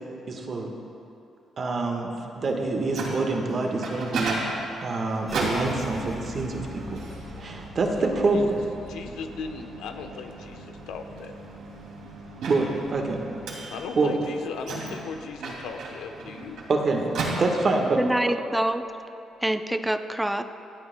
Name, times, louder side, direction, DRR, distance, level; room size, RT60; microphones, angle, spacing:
voice 1, 0.3-0.7 1.6-4.6 4.8-7.0 7.4-8.6 12.5-13.2 13.6-14.2 16.7-18.0 18.3-18.4, right 3 dB, 45° right, 2 dB, 1.3 m, -26 dB
Microwave oven, 2.6-18.0, right 3 dB, 80° right, 2.5 m, -36 dB
sound 1, 5.3-14.7 15.0-16.2 16.5-17.0 17.5-18.0, left 2 dB, 15° left, 2.3 m, -45 dB
voice 2, 8.0-8.4 8.8-11.4 13.7-16.6, left 5 dB, 90° left, 5 dB, 0.9 m, -37 dB
voice 3, 18.0-18.8 19.4-20.4, right 1 dB, 5° right, 9 dB, 0.5 m, -25 dB
25.5 x 8.7 x 2.2 m, 2.7 s
cardioid pair, 90°, 0 cm